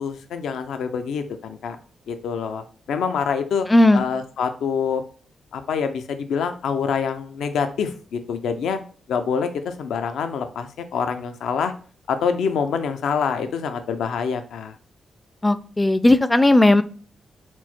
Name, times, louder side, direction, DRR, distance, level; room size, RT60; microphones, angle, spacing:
voice 1, 0.0-1.8 2.1-3.7 3.9-5.0 5.5-8.8 9.1-11.7 12.1-14.7, left 6 dB, 85° left, 8 dB, 0.4 m, -26 dB
voice 2, 3.7-4.0 15.4-16.8, left 1 dB, 15° left, 13 dB, 0.4 m, -16 dB
4.4 x 2.1 x 4.3 m, 0.41 s
cardioid pair, 60°, 0 cm